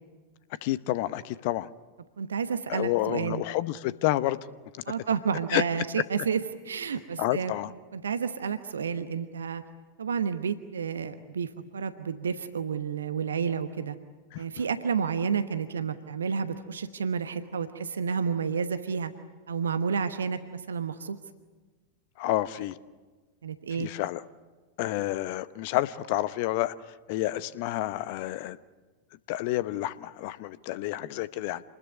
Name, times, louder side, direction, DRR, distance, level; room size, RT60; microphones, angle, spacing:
voice 1, 0.6-1.7 2.7-4.4 5.5-5.6 7.2-7.7 14.3-14.4 22.2-22.8 23.8-24.2 24.8-26.7 27.1-28.6 29.3-31.6, left 15 dB, 45° left, 17 dB, 0.9 m, -29 dB
voice 2, 2.2-3.4 4.9-7.5 7.9-9.6 10.0-14.0 14.4-19.1 19.5-21.2 23.4-23.9, right 6 dB, 70° right, 11 dB, 1.1 m, -30 dB
27.5 x 20.5 x 9.7 m, 1.3 s
figure-of-eight pair, 90°, 0 cm